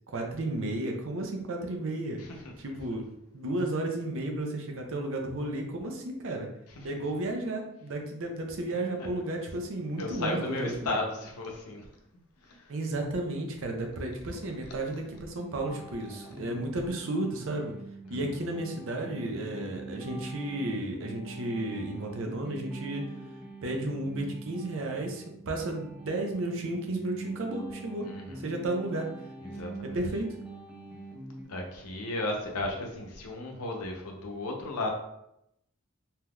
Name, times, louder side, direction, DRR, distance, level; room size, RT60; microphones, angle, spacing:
voice 1, 0.1-2.2 2.6-3.0 3.3-6.5 6.8-11.0 12.7-17.7 18.1-23.0 23.6-28.1 28.4-29.1 29.8-30.3, right 1 dB, 60° right, 3 dB, 0.6 m, -33 dB
voice 2, 8.7-9.1 10.0-11.9 12.4-12.7 14.4-14.5 18.1-18.2 28.0-28.5 29.4-30.0 31.5-34.9, left 2 dB, 85° left, 1 dB, 0.7 m, -35 dB
sound 1, 14.9-31.4, right 3 dB, 5° right, 0.7 m, -44 dB
3.4 x 2.8 x 2.3 m, 0.80 s
head